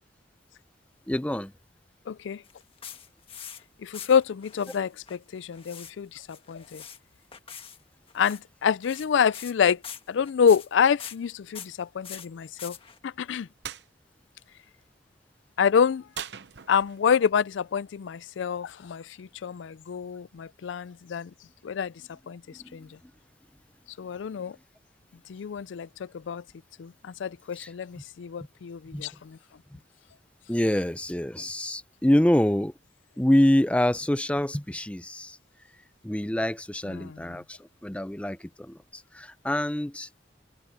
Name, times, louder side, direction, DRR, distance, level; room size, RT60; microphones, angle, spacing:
voice 1, 1.1-1.5 22.6-22.8 27.6-27.7 28.9-29.1 30.5-32.7 33.2-35.4 36.0-40.1, left 1 dB, 5° left, 0.5 m, -26 dB
voice 2, 2.1-2.4 3.8-6.8 8.1-9.8 10.1-12.8 13.0-13.5 15.6-16.1 16.7-21.3 21.6-22.9 24.0-24.6 25.3-26.4 26.8-29.4 36.9-37.4, left 7 dB, 85° left, 0.4 m, -27 dB
sound 1, 2.4-3.6 3.9-4.8 5.1-5.9 6.2-7.0 7.3-7.8 8.1-8.4 8.8-9.6 9.8-10.7 11.0-11.2 11.5-11.7 12.0-13.0, left 8 dB, 30° left, 1.6 m, -43 dB
sound 2, 13.6-13.9 16.1-17.1, right 8 dB, 65° right, 0.8 m, -39 dB
head